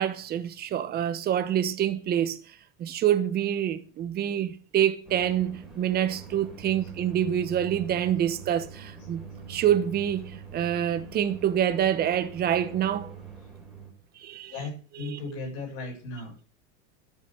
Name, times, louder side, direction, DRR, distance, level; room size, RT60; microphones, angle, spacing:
voice 1, 0.0-2.4 2.8-9.2 9.5-13.1 14.2-14.5 15.0-15.2, right 10 dB, 25° right, 1.2 m, -26 dB
sound 1, 5.0-13.9, right 5 dB, ahead, 3.6 m, -44 dB
voice 2, 14.5-16.4, left 3 dB, 40° left, 6.9 m, -36 dB
13.5 x 7.1 x 6.8 m
supercardioid pair, 160°, 37 cm